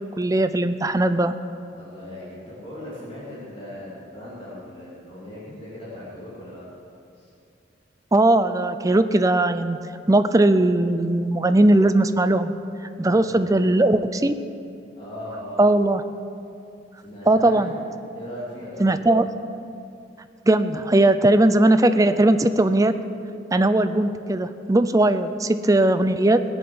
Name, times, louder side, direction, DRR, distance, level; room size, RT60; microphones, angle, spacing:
voice 1, 0.2-1.3 8.1-9.8 10.1-12.5 13.0-14.4 15.6-16.0 17.3-17.7 18.8-19.2 20.5-22.9 23.5-26.4, right 1 dB, 20° right, 11 dB, 0.5 m, -19 dB
voice 2, 1.7-6.6 7.1-7.3 12.9-13.6 14.9-15.7 17.0-17.8 18.1-19.2, left 1 dB, 30° left, -8 dB, 2.8 m, -38 dB
18.0 x 7.1 x 7.9 m, 2.5 s
head